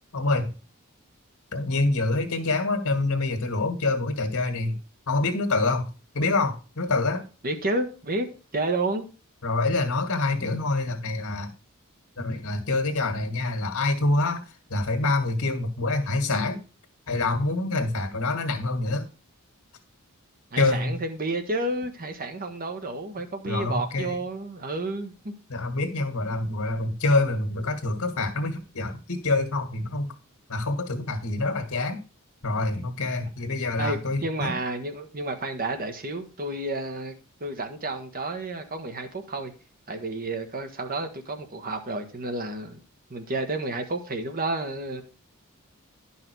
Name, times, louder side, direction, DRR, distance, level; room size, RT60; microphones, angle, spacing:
voice 1, 0.1-0.5 1.5-4.8 5.1-5.9 6.1-7.2 9.4-11.5 12.2-14.4 14.7-16.6 17.1-19.0 20.6-20.9 23.5-24.2 25.5-30.1 30.5-32.0 32.4-34.6, left 2 dB, 80° left, 4 dB, 1.8 m, -26 dB
voice 2, 7.4-9.0 20.5-25.3 33.8-39.5 39.9-42.8 43.1-45.0, right 2 dB, 40° right, 7 dB, 1.3 m, -31 dB
10.5 x 5.8 x 4.6 m, 0.34 s
head